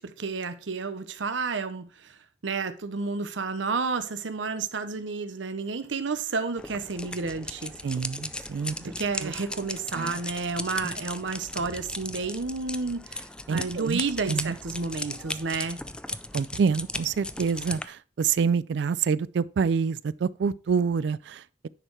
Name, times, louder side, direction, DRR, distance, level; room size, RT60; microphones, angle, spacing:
voice 1, 0.0-2.1 2.4-7.7 8.8-15.8, right 4 dB, 80° right, 0.8 m, -31 dB
sound 1, 6.6-17.9, left 2 dB, 5° left, 0.4 m, -37 dB
voice 2, 7.8-8.9 9.2-9.3 9.9-10.2 13.5-14.0 14.3-14.6 16.3-21.7, right 6 dB, 65° right, 0.3 m, -27 dB
9.9 x 4.6 x 4.5 m
head